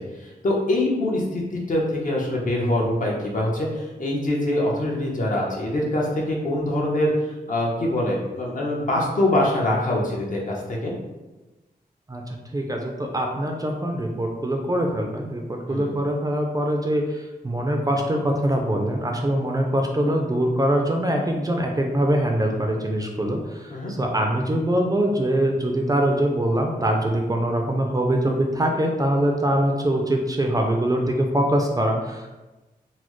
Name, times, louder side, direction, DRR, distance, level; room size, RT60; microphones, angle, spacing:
voice 1, 0.0-7.1 7.5-10.9 15.7-15.9 23.7-23.9, left 1 dB, 55° left, -2 dB, 0.8 m, -24 dB
voice 2, 12.5-32.3, right 1 dB, 20° right, 1 dB, 0.4 m, -23 dB
4.0 x 2.0 x 3.0 m, 1.1 s
wide cardioid pair, 115°, 16 cm